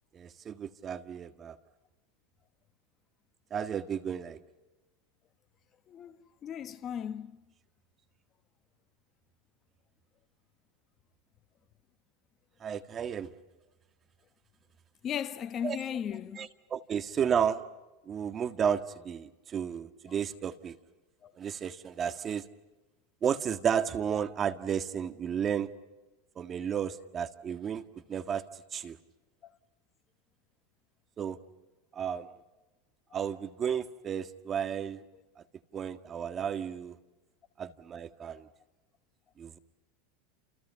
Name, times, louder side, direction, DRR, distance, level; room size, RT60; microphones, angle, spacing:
voice 1, 0.1-1.6 3.5-4.4 12.6-13.3 15.6-15.8 16.4-17.6 18.1-20.8 21.4-22.4 23.2-25.7 26.4-29.0 31.2-31.4 31.9-32.3 33.1-35.0 35.4-35.5 35.7-37.0 37.6-38.5 39.4-39.6, right 8 dB, 30° right, 1.7 m, -33 dB
voice 2, 5.9-6.2 6.4-7.3 15.0-16.5 20.1-20.2 21.2-21.3 29.4-29.5, left 9 dB, 35° left, 1.2 m, -36 dB
29.5 x 29.0 x 5.8 m
supercardioid pair, 115°, 0 cm